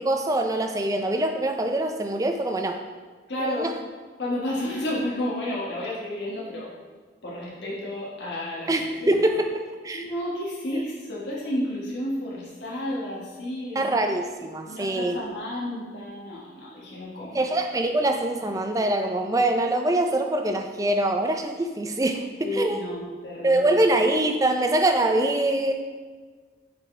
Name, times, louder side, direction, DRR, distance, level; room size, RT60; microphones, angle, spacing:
voice 1, 0.0-2.8 3.4-3.7 8.7-9.5 9.8-10.0 13.8-15.2 17.3-22.8 23.4-25.7, right 1 dB, 20° right, 5 dB, 0.4 m, -24 dB
voice 2, 3.3-3.7 4.2-6.7 7.2-8.7 9.0-9.1 9.9-14.1 14.7-17.4 22.4-23.8, left 1 dB, 75° left, -6 dB, 1.4 m, -31 dB
7.3 x 4.4 x 3.3 m, 1.4 s
head